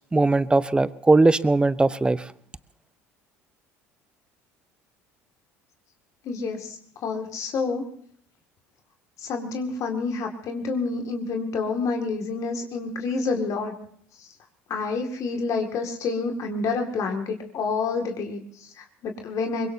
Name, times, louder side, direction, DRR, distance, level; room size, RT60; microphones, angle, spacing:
voice 1, 0.1-2.2, right 2 dB, 15° right, 18 dB, 0.7 m, -19 dB
voice 2, 6.2-7.9 9.2-13.7 14.7-19.7, left 4 dB, 55° left, 3 dB, 2.2 m, -28 dB
23.0 x 21.5 x 2.8 m, 0.62 s
hypercardioid pair, 70°, 7 cm